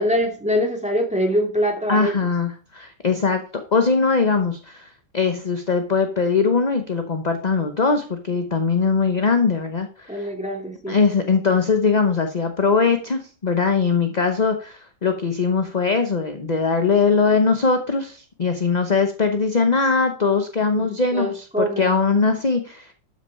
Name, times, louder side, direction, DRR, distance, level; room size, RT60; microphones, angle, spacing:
voice 1, 0.0-2.2 10.1-11.0 20.7-21.9, equal, 5° right, 2 dB, 2.1 m, -24 dB
voice 2, 1.9-3.4 3.7-4.9 5.1-10.3 10.9-22.9, left 4 dB, 30° left, 6 dB, 0.8 m, -21 dB
12.5 x 6.4 x 5.5 m, 0.38 s
omnidirectional pair, 1.9 m